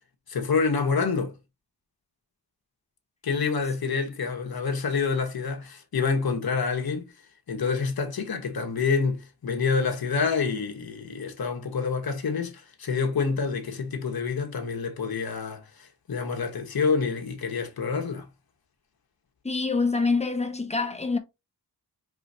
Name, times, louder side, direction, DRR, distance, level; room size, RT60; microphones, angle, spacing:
voice 1, 0.3-1.4 3.2-7.1 7.5-18.3, left 5 dB, 65° left, 1.1 m, -27 dB
voice 2, 19.4-21.2, left 4 dB, 15° left, 0.8 m, -25 dB
4.7 x 3.1 x 2.7 m
wide cardioid pair, 100°, 40 cm